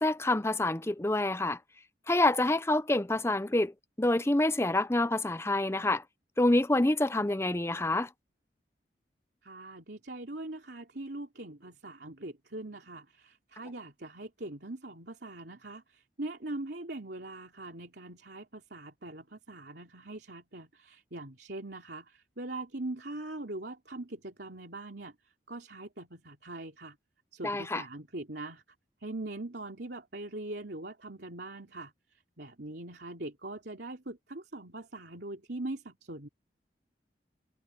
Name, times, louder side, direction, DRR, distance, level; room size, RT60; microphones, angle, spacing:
voice 1, 0.0-1.6 2.1-3.7 4.0-6.0 6.4-8.1 27.4-27.8, left 2 dB, 15° left, 0.7 m, -27 dB
voice 2, 9.4-25.1 25.5-26.9 27.3-28.6 29.0-31.9 32.4-36.3, right 2 dB, 70° right, 3.2 m, -42 dB
head